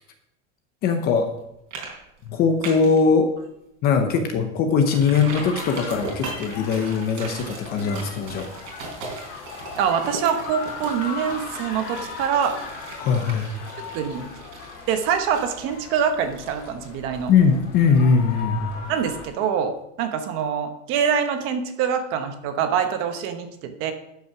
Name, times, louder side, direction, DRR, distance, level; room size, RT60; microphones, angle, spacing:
voice 1, 0.8-1.3 2.2-3.3 3.8-8.5 13.0-13.5 17.3-18.7, left 5 dB, 25° left, 7 dB, 0.7 m, -20 dB
sound 1, 1.2-1.4 1.7-1.9 2.2-3.0 3.4-3.5 3.9-4.0 4.8-18.4 18.7-18.8, right 4 dB, 55° right, 4.0 m, -39 dB
sound 2, 5.3-19.3, left 5 dB, 45° left, 2.2 m, -38 dB
voice 2, 9.8-12.6 13.9-14.3 14.9-17.3 18.9-23.9, right 7 dB, 35° right, 7 dB, 1.0 m, -25 dB
12.0 x 5.8 x 5.9 m, 0.82 s
supercardioid pair, 170°, 38 cm